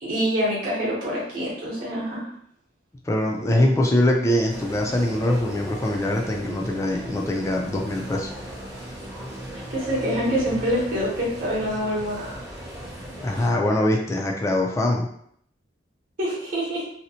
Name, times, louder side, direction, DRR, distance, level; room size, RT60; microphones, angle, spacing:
voice 1, 0.0-2.3 9.7-12.4 13.3-13.5 16.2-16.9, equal, 50° right, -6 dB, 0.8 m, -26 dB
voice 2, 3.1-8.3 13.2-15.1, left 1 dB, 15° left, 0 dB, 0.3 m, -23 dB
sound 1, 4.5-13.5, equal, 20° right, 0.6 m, -37 dB
2.7 x 2.0 x 2.7 m, 0.67 s
head